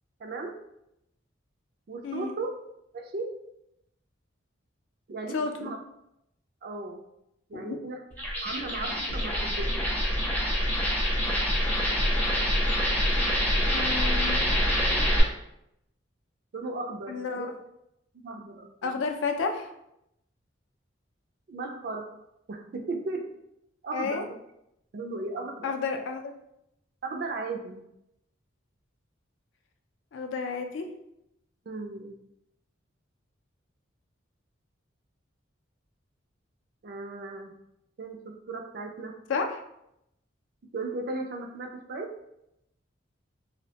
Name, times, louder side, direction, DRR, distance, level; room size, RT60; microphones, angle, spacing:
voice 1, 0.2-0.6 1.9-2.5 2.9-3.4 5.1-5.8 6.6-7.0 7.5-9.9 14.2-14.4 16.5-17.5 18.1-19.0 21.5-22.1 22.5-23.3 23.8-24.2 24.9-25.7 27.0-27.8 31.7-32.2 36.8-37.5 38.0-39.2 40.7-42.1, right 3 dB, 50° right, 4 dB, 0.3 m, -36 dB
voice 2, 2.0-2.4 5.3-5.7 7.5-7.8 13.7-14.4 17.1-17.5 18.8-19.7 23.9-24.2 25.6-26.3 30.1-30.9 39.3-39.5, left 4 dB, 70° left, 5 dB, 0.3 m, -31 dB
sound 1, 8.1-15.2, equal, 10° left, 0.5 m, -26 dB
2.7 x 2.1 x 2.8 m, 0.81 s
head